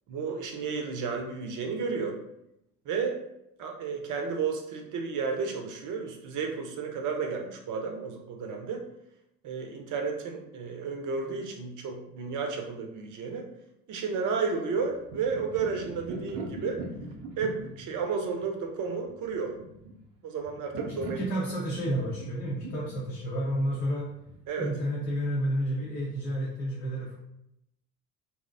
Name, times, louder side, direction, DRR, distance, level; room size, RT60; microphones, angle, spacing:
voice 1, 0.1-2.2 2.9-3.2 3.6-8.8 9.4-13.5 13.9-16.8 17.4-19.5 20.2-21.2 24.5-24.7, right 5 dB, 40° right, 3 dB, 0.6 m, -32 dB
sound 1, 14.8-24.5, right 2 dB, 85° right, 0.6 m, -41 dB
voice 2, 20.9-24.1 24.6-27.2, equal, 80° left, -7 dB, 0.9 m, -31 dB
2.6 x 2.0 x 2.5 m, 0.82 s
hypercardioid pair, 65°, 48 cm